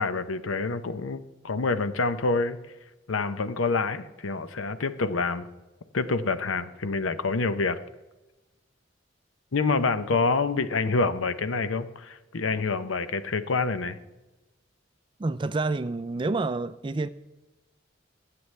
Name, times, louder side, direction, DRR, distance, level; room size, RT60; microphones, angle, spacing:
voice 1, 0.0-2.6 3.1-5.5 5.9-7.8 9.5-14.0, left 4 dB, 90° left, 12 dB, 0.7 m, -27 dB
voice 2, 15.2-17.1, right 3 dB, 25° right, 13 dB, 0.3 m, -28 dB
22.0 x 7.7 x 3.3 m, 1.1 s
head